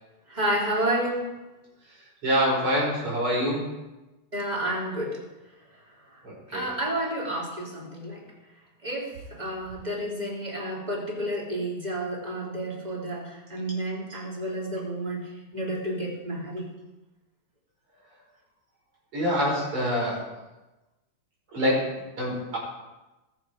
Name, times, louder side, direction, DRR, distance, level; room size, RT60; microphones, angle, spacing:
voice 1, 0.3-1.3 4.3-5.2 6.1-6.2 6.5-8.3 8.8-16.7, right 1 dB, 20° right, -3 dB, 3.2 m, -30 dB
voice 2, 2.2-3.7 6.2-6.7 19.1-20.3 21.5-22.6, equal, 85° right, -4 dB, 6.0 m, -26 dB
21.0 x 7.5 x 5.0 m, 1.1 s
omnidirectional pair, 2.4 m